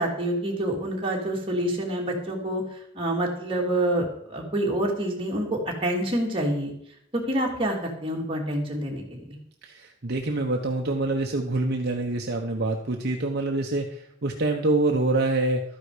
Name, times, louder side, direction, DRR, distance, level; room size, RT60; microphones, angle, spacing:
voice 1, 0.0-2.6 2.9-6.7 7.1-9.2, right 1 dB, 25° right, -1 dB, 2.9 m, -27 dB
voice 2, 9.6-15.6, right 2 dB, 55° right, 2 dB, 1.0 m, -26 dB
13.0 x 9.9 x 5.0 m, 0.71 s
head